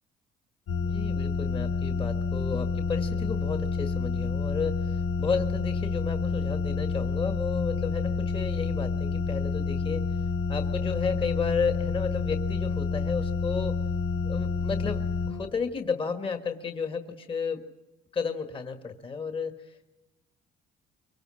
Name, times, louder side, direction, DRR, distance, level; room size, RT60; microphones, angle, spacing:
sound 1, 0.7-15.3, left 4 dB, 75° left, 4.6 m, -29 dB
voice 1, 0.8-10.0 10.5-13.8 14.2-17.7 18.1-19.9, left 5 dB, 30° left, 6 dB, 1.6 m, -32 dB
24.0 x 24.0 x 6.4 m, 1.0 s
cardioid pair, 110°, 17 cm